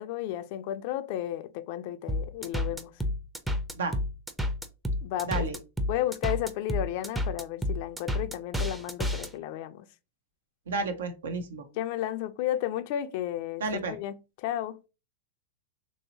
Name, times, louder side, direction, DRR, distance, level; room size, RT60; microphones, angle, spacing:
voice 1, 0.0-2.9 5.0-5.5 5.9-9.8 11.7-14.8, left 12 dB, 55° left, 0.3 m, -33 dB
sound 1, 2.1-9.3, left 1 dB, 5° right, 0.5 m, -30 dB
voice 2, 5.2-5.6 10.7-11.6 13.6-14.0, right 4 dB, 85° right, 0.7 m, -31 dB
3.0 x 2.7 x 2.8 m
hypercardioid pair, 115°, 0 cm